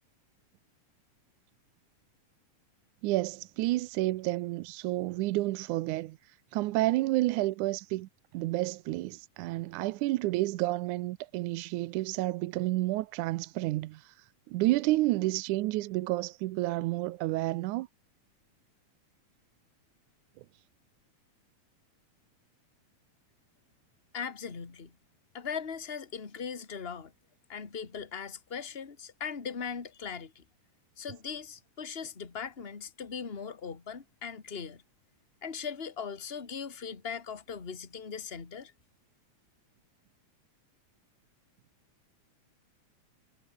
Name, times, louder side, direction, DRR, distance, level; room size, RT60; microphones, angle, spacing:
voice 1, 3.0-6.2 6.5-8.1 8.3-14.1 14.5-17.9, right 18 dB, 85° right, 2.1 m, -30 dB
voice 2, 24.1-24.9 25.3-27.1 27.5-30.4 31.0-34.8 35.4-38.7, left 6 dB, 25° left, 1.8 m, -39 dB
omnidirectional pair, 3.5 m